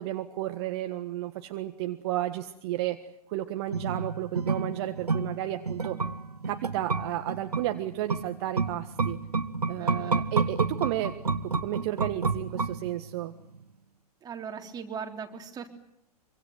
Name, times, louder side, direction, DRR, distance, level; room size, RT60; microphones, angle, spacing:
voice 1, 0.0-3.0 3.3-6.0 6.4-9.2 9.7-13.3, right 14 dB, 45° right, 8 dB, 1.5 m, -32 dB
sound 1, 3.7-13.2 13.5-13.6, right 4 dB, 80° right, 1.6 m, -30 dB
voice 2, 9.8-10.1 14.2-15.7, right 6 dB, 20° right, 3 dB, 3.7 m, -39 dB
25.5 x 25.0 x 8.0 m, 0.78 s
figure-of-eight pair, 105°, 20 cm